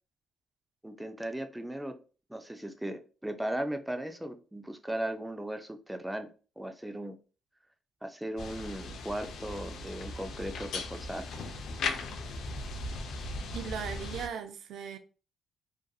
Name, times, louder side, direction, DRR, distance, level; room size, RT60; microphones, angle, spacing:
voice 1, 0.8-2.0 2.3-6.3 6.6-7.2 8.0-11.3, right 1 dB, 5° right, 0.3 m, -37 dB
sound 1, 8.4-14.3, left 3 dB, 70° left, 0.4 m, -38 dB
voice 2, 13.5-15.0, right 7 dB, 75° right, 0.4 m, -38 dB
2.6 x 2.5 x 2.3 m
cardioid pair, 90°, 0 cm